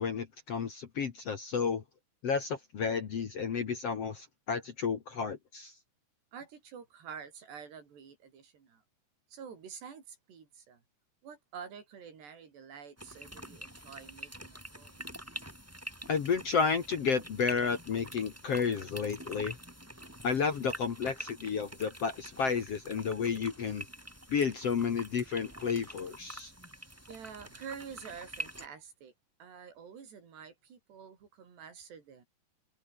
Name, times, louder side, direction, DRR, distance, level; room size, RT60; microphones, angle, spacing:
voice 1, 0.0-1.8 2.2-5.7 16.1-19.6 20.2-23.8 24.3-26.5, left 6 dB, 50° left, 2.2 m, -31 dB
voice 2, 6.3-8.8 9.3-10.8 11.2-15.1 27.1-29.1 29.4-32.3, right 7 dB, 80° right, 6.5 m, -48 dB
sound 1, 13.0-28.7, equal, 5° right, 4.6 m, -46 dB
omnidirectional pair, 4.8 m